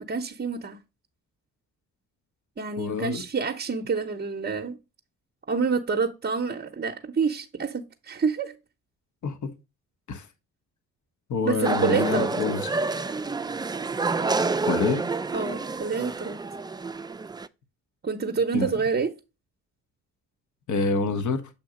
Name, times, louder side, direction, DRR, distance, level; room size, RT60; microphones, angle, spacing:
voice 1, 0.1-0.8 2.6-4.8 5.5-8.5 11.4-12.3 15.3-16.4 18.0-19.1, right 5 dB, 30° right, 0.7 m, -27 dB
voice 2, 2.8-3.2 9.2-9.5 10.1-10.3 11.3-12.7 14.6-15.0 18.5-18.7 20.7-21.4, left 4 dB, 55° left, 1.1 m, -26 dB
sound 1, 11.6-17.5, right 3 dB, 10° right, 0.3 m, -28 dB
7.0 x 2.8 x 4.9 m
supercardioid pair, 55°, 35 cm